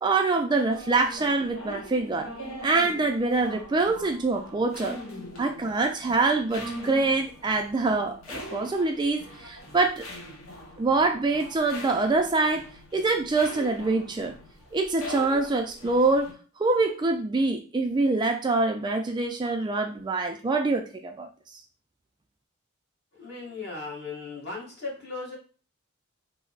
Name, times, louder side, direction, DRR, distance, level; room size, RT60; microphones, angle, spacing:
voice 1, 0.0-2.3 2.6-5.0 5.4-10.0 10.8-12.7 12.9-14.3 14.7-21.3, right 3 dB, 20° right, 4 dB, 0.3 m, -25 dB
sound 1, 0.6-16.3, equal, 75° left, 0.9 m, -42 dB
voice 2, 23.2-25.4, left 3 dB, 50° left, -3 dB, 1.4 m, -37 dB
3.2 x 2.0 x 3.8 m, 0.37 s
head